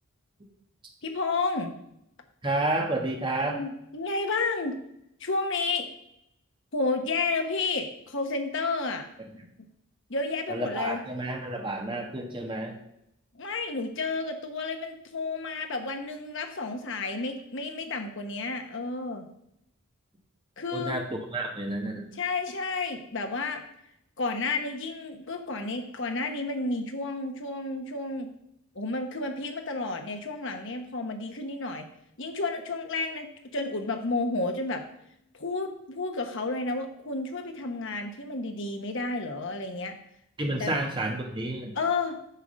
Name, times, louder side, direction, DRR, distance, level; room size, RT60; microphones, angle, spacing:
voice 1, 1.0-1.8 3.4-4.8 5.2-5.9 6.7-9.1 10.1-11.0 13.3-19.2 20.6-20.9 22.2-23.6 24.2-28.3 28.7-31.9 32.2-34.8 35.3-40.0 40.6-40.7 41.8-42.2, left 3 dB, 60° left, 5 dB, 1.1 m, -31 dB
voice 2, 2.4-3.6 9.4-9.5 10.5-12.8 20.7-22.1 40.4-41.8, right 2 dB, 20° right, 2 dB, 1.4 m, -30 dB
10.0 x 3.8 x 6.3 m, 0.78 s
head